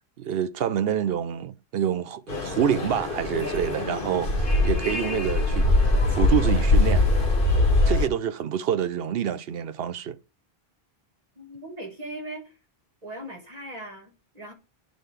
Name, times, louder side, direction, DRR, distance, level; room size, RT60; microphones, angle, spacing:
voice 1, 0.2-5.7 6.1-7.0 7.9-10.2, right 9 dB, 70° right, 0.8 m, -27 dB
sound 1, 2.3-8.1, left 2 dB, 55° left, 1.4 m, -22 dB
voice 2, 11.3-12.5 13.0-14.5, right 1 dB, 40° right, 1.7 m, -39 dB
11.0 x 3.9 x 3.3 m
omnidirectional pair, 1.1 m